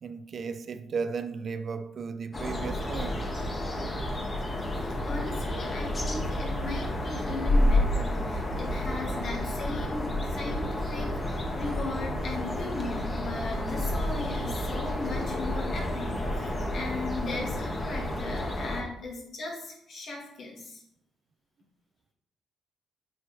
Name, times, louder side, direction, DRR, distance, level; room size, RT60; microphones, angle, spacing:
voice 1, 0.0-3.2 8.4-8.6 18.0-18.2, right 5 dB, 50° right, 0.5 m, -35 dB
sound 1, 2.3-18.8, left 1 dB, 30° left, 1.2 m, -30 dB
voice 2, 5.0-20.8, left 3 dB, 60° left, 2.1 m, -37 dB
7.6 x 4.5 x 3.1 m
cardioid pair, 90°, 0 cm